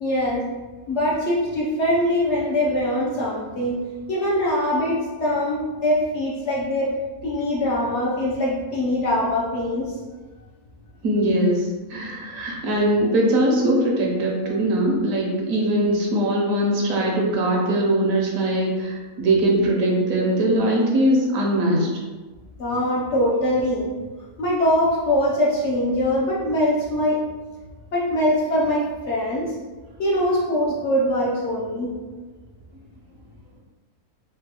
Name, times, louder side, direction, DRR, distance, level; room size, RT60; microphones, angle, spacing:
voice 1, 0.0-0.5 0.9-3.8 4.1-7.0 7.2-9.9 22.6-23.9 24.4-27.2 27.9-29.5 30.0-31.9, left 1 dB, 60° left, -5 dB, 0.8 m, -22 dB
voice 2, 11.0-21.9, right 1 dB, 70° right, -1 dB, 1.0 m, -21 dB
3.7 x 2.3 x 2.8 m, 1.3 s
omnidirectional pair, 1.6 m